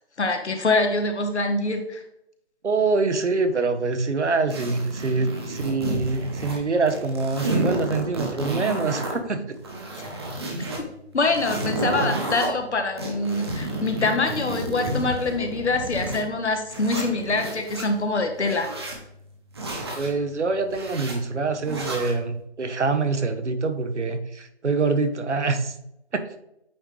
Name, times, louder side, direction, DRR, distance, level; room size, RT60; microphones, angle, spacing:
voice 1, 0.2-2.0 9.9-10.1 10.8-10.9 11.1-18.7, left 3 dB, 75° left, 5 dB, 1.2 m, -25 dB
voice 2, 2.6-9.6 20.0-25.7 26.1-26.4, right 4 dB, 90° right, 8 dB, 1.1 m, -25 dB
sound 1, 4.5-6.6 6.9-9.1 9.6-10.8 11.2-12.5 13.0-16.2 16.7-17.9 18.4-19.0 19.5-20.1 20.7-21.2 21.6-22.2, right 1 dB, 25° right, 1.0 m, -30 dB
8.7 x 3.8 x 3.2 m, 0.79 s
figure-of-eight pair, 165°, 34 cm